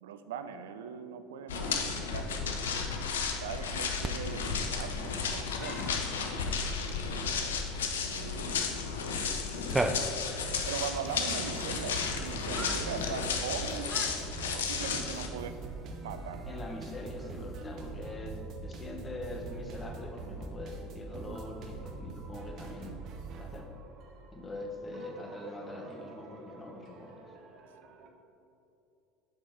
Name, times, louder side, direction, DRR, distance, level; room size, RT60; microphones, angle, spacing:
voice 1, 0.0-2.7 3.4-6.0 8.1-8.9 10.7-13.9 14.5-15.5 16.0-16.5, right 7 dB, 75° right, 10 dB, 0.4 m, -40 dB
sound 1, 1.5-15.3, left 5 dB, 80° left, 0.6 m, -33 dB
voice 2, 1.6-2.6 14.9-15.1 16.5-23.0 23.3-23.7 24.3-27.3, left 2 dB, 25° left, 2 dB, 1.2 m, -43 dB
Cat, 4.0-17.7, right 2 dB, 10° right, 0.4 m, -42 dB
sound 2, 10.4-28.1, right 3 dB, 50° right, 0.7 m, -44 dB
7.7 x 4.2 x 4.6 m, 2.9 s
hypercardioid pair, 75°, 0 cm